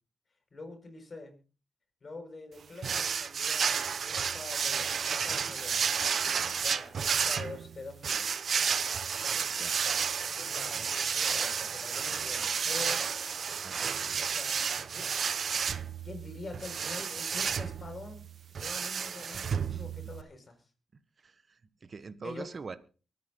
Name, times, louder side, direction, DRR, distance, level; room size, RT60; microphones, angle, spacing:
voice 1, 0.5-1.3 2.0-5.9 6.6-8.3 10.4-13.1 14.2-15.5 16.0-18.3 18.6-20.6 22.2-22.5, left 3 dB, 40° left, 5 dB, 6.8 m, -45 dB
sound 1, 2.8-20.2, right 6 dB, 65° right, 1.0 m, -31 dB
voice 2, 21.2-22.8, right 4 dB, 45° right, 13 dB, 1.5 m, -44 dB
23.5 x 9.8 x 4.1 m, 0.35 s
cardioid pair, 80°, 0 cm